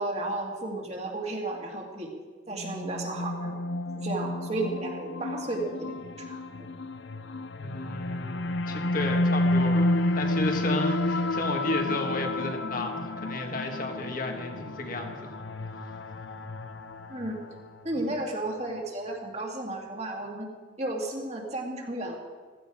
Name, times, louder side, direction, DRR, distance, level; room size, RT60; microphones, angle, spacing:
voice 1, 0.0-2.1 2.5-3.6 4.0-6.0 6.3-6.7 17.1-17.4 17.8-20.5 20.8-22.2, right 2 dB, 35° right, 0 dB, 2.3 m, -33 dB
sound 1, 2.5-17.9, left 1 dB, 70° left, 0.7 m, -30 dB
voice 2, 7.6-15.3 18.1-18.2, left 2 dB, 45° left, 3 dB, 1.7 m, -33 dB
16.0 x 14.5 x 4.9 m, 1.5 s
head